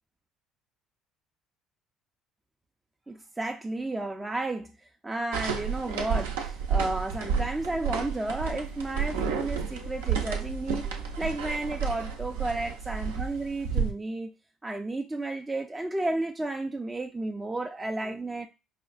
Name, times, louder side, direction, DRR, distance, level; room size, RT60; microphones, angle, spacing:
voice 1, 3.1-4.7 5.0-14.3 14.6-18.5, right 2 dB, 15° right, 0.3 m, -32 dB
sound 1, 5.3-13.9, right 6 dB, 80° right, 0.5 m, -31 dB
Squeak, 6.8-12.7, left 6 dB, 55° left, 0.5 m, -52 dB
4.9 x 2.1 x 2.4 m
hypercardioid pair, 60°, 0 cm